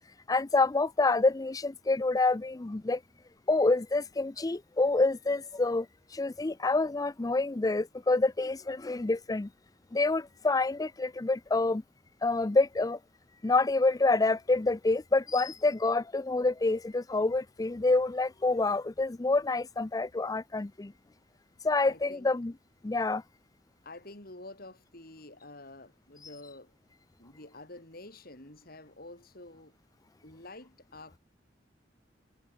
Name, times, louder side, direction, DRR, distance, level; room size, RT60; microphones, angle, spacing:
voice 1, 0.3-3.0 3.5-5.9 6.1-9.5 9.9-11.8 12.2-13.0 13.4-20.9 21.6-22.5 22.8-23.2, left 3 dB, 20° left, 0.5 m, -27 dB
voice 2, 21.8-22.3 23.8-26.7 27.2-29.8 30.2-31.2, left 2 dB, 55° left, 5.6 m, -48 dB
head